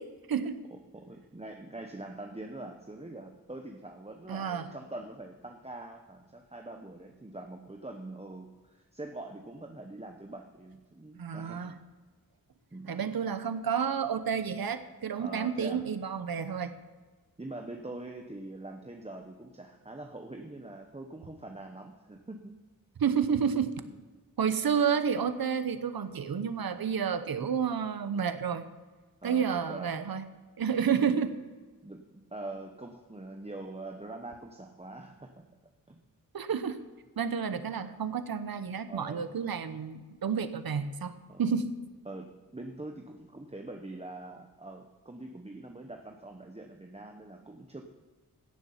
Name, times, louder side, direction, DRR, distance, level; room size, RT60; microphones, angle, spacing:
voice 1, 0.0-0.6 4.3-4.7 11.2-11.7 12.9-16.7 23.0-23.7 24.4-28.7 29.2-30.3 30.6-31.4 36.3-36.8 37.2-41.1 41.4-41.7, right 7 dB, 70° right, 11 dB, 0.9 m, -30 dB
voice 2, 0.7-11.8 12.7-13.0 15.2-15.9 17.4-22.5 23.8-24.1 29.2-30.0 31.8-35.5 35.9-36.0 37.7-38.0 38.9-39.3 41.3-41.4 42.0-47.8, right 2 dB, 15° right, 3 dB, 1.0 m, -44 dB
16.5 x 7.1 x 5.7 m, 1.4 s
wide cardioid pair, 70°, 37 cm